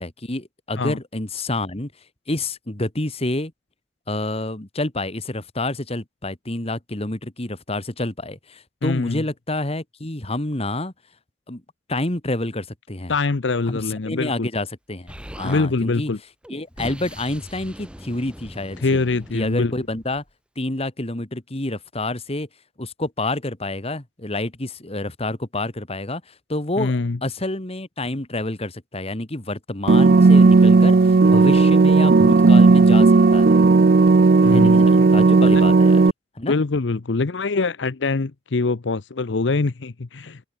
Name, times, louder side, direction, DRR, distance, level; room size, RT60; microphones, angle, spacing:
voice 1, 0.0-1.9 2.3-3.5 4.1-10.9 11.5-11.6 11.9-13.1 13.7-16.1 16.5-19.0 19.3-20.2 20.6-22.5 22.8-33.6 34.5-36.0 36.4-36.6, left 2 dB, 35° left, 2.2 m, -28 dB
voice 2, 8.8-9.2 13.1-14.5 15.4-16.2 18.8-19.7 26.8-27.2 34.4-35.1 36.5-40.4, left 3 dB, 70° left, 0.7 m, -23 dB
Explosion, 15.1-15.6 16.4-20.3, equal, 5° right, 5.1 m, -40 dB
sound 1, 29.9-36.1, right 3 dB, 55° right, 0.5 m, -13 dB
head